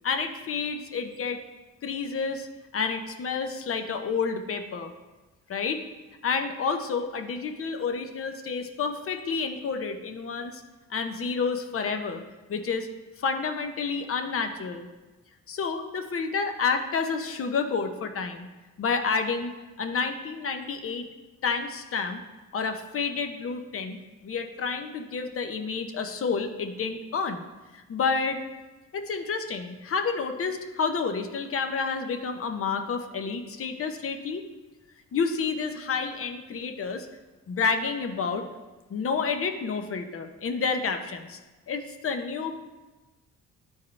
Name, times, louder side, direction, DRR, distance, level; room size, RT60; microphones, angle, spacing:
voice 1, 0.0-1.4 1.8-2.5 2.7-4.9 5.5-5.8 6.2-10.6 10.9-12.2 12.5-12.9 13.2-14.9 15.5-18.5 18.8-21.1 21.4-22.2 22.5-24.0 24.2-27.4 27.7-28.4 28.9-34.4 35.1-37.1 37.5-38.4 38.9-41.4 41.7-42.6, left 5 dB, 45° left, 7 dB, 0.8 m, -29 dB
11.0 x 4.6 x 3.2 m, 1.2 s
cardioid pair, 90°, 30 cm